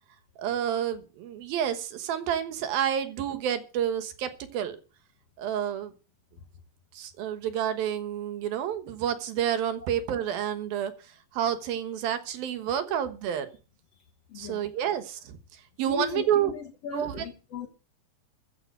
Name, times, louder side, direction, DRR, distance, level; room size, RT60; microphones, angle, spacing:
voice 1, 0.4-4.8 5.4-5.9 6.9-13.5 14.4-16.5 16.9-17.2, right 9 dB, 70° right, 2.9 m, -29 dB
voice 2, 14.3-14.7 15.9-17.7, left 5 dB, 55° left, 2.0 m, -37 dB
15.0 x 7.1 x 8.0 m
omnidirectional pair, 4.6 m